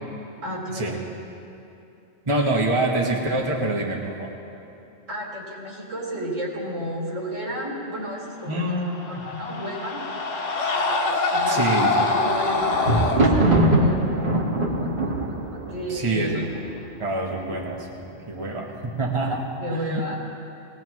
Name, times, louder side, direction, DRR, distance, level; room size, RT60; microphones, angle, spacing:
voice 1, 0.4-1.1 5.1-8.8 9.1-10.0 11.3-14.0 15.7-16.4 17.4-17.6 19.6-20.2, equal, 85° right, -5 dB, 4.2 m, -32 dB
voice 2, 2.3-4.3 8.5-9.2 11.5-12.1 15.9-16.5 17.0-17.9 18.3-19.5 19.7-20.0, right 2 dB, 25° right, -1 dB, 1.3 m, -26 dB
sound 1, 8.7-13.2, left 3 dB, 75° left, 1.5 m, -24 dB
Thunder, 11.8-17.0 17.7-18.2 18.5-18.6, right 1 dB, 45° right, 1.9 m, -22 dB
20.0 x 19.0 x 3.1 m, 2.7 s
omnidirectional pair, 1.3 m